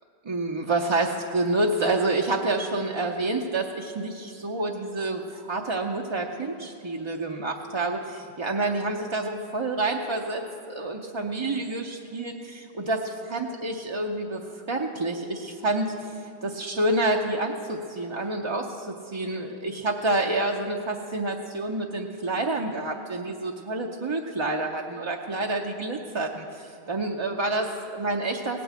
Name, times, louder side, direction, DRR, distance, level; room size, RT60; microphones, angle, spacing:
voice 1, 0.2-28.6, right 2 dB, 35° right, 1 dB, 0.6 m, -28 dB
17.5 x 6.1 x 8.1 m, 2.9 s
omnidirectional pair, 1.1 m